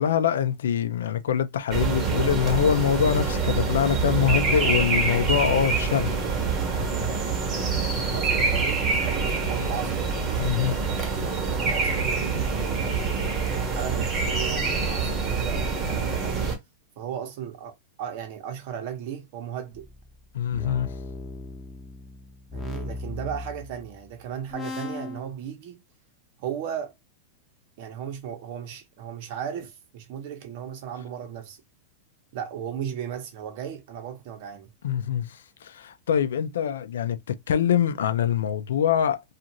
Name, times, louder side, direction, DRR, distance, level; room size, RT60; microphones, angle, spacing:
voice 1, 0.0-6.1 10.4-10.8 20.3-20.9 34.8-35.3 35.6-39.2, left 9 dB, 90° left, 0.4 m, -24 dB
sound 1, 1.7-16.6, right 4 dB, 25° right, 1.0 m, -26 dB
voice 2, 7.8-10.1 11.5-16.5 17.0-19.9 22.5-25.8 26.4-26.9 27.8-31.6 32.3-34.7, right 9 dB, 55° right, 0.9 m, -36 dB
sound 2, 19.7-24.1 24.5-25.2, left 2 dB, 5° left, 0.7 m, -37 dB
2.5 x 2.4 x 2.9 m
supercardioid pair, 140°, 0 cm